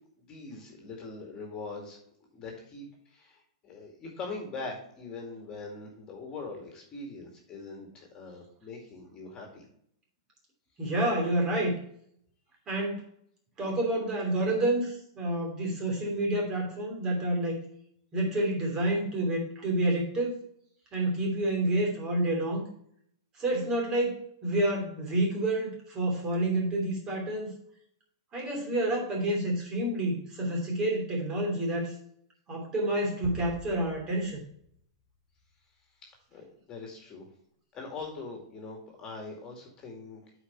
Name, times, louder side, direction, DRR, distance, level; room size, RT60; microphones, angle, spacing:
voice 1, 0.2-2.0 2.3-9.7 36.3-37.3 37.7-40.2, left 3 dB, 25° left, 1 dB, 2.2 m, -42 dB
voice 2, 10.8-11.8 12.7-13.0 13.6-17.6 18.1-20.4 20.9-22.6 23.4-27.5 28.3-31.9 32.5-34.4, right 1 dB, 25° right, -1 dB, 2.9 m, -29 dB
sound 1, 33.2-35.7, equal, 5° right, 2.1 m, -46 dB
8.2 x 4.8 x 4.5 m, 0.67 s
hypercardioid pair, 140°, 3 cm